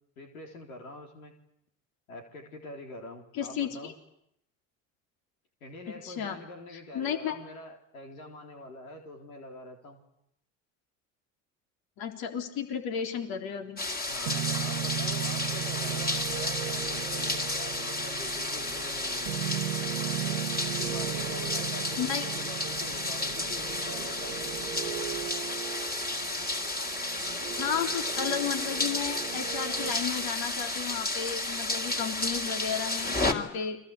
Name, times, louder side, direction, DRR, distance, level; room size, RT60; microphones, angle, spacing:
voice 1, 0.2-1.3 2.1-3.9 5.6-10.0 14.1-19.5 20.8-25.2, left 1 dB, 90° left, 3 dB, 3.9 m, -45 dB
voice 2, 3.3-3.9 6.0-6.4 6.7-7.4 12.0-13.8 21.7-22.3 27.6-33.8, left 8 dB, 60° left, 5 dB, 3.7 m, -33 dB
sound 1, 13.8-33.3, left 2 dB, 20° left, 3.8 m, -32 dB
sound 2, 14.3-29.9, right 12 dB, 85° right, 1.9 m, -37 dB
29.5 x 23.0 x 8.5 m, 0.77 s
hypercardioid pair, 70°, 41 cm